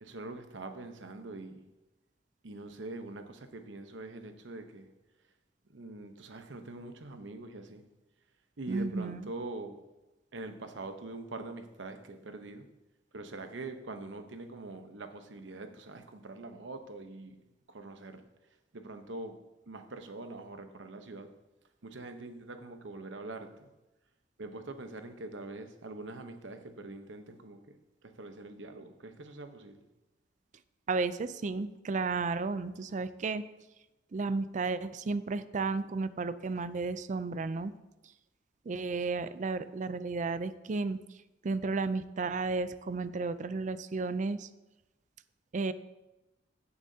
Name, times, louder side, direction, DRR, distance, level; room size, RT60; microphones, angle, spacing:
voice 1, 0.0-1.6 2.4-4.9 5.7-7.8 8.6-9.8 10.3-12.7 13.1-17.3 17.7-18.3 18.7-19.4 19.7-21.3 21.8-23.7 24.4-27.6 28.0-29.8, right 2 dB, 80° right, 7 dB, 0.9 m, -43 dB
voice 2, 8.7-9.3 30.9-33.4 34.1-37.7 38.7-41.0 41.4-44.5 45.5-45.7, right 3 dB, 40° right, 14 dB, 0.4 m, -33 dB
16.0 x 7.0 x 2.8 m, 1.0 s
head